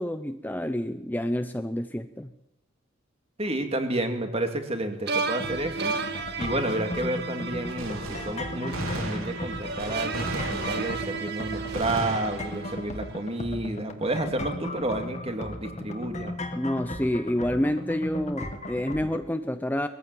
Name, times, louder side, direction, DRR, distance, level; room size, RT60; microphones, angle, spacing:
voice 1, 0.0-2.3 16.5-19.9, left 1 dB, 10° left, 9 dB, 0.7 m, -28 dB
voice 2, 3.4-5.9 6.4-16.3, right 1 dB, 30° right, 6 dB, 2.5 m, -30 dB
sound 1, 5.1-13.3, right 4 dB, 50° right, 2.0 m, -34 dB
sound 2, 5.4-19.2, left 1 dB, 35° left, 2.1 m, -37 dB
Gunshot gunfire, 7.8-11.3 11.7-12.8, right 2 dB, 85° right, 3.8 m, -35 dB
21.5 x 15.0 x 9.2 m, 0.87 s
head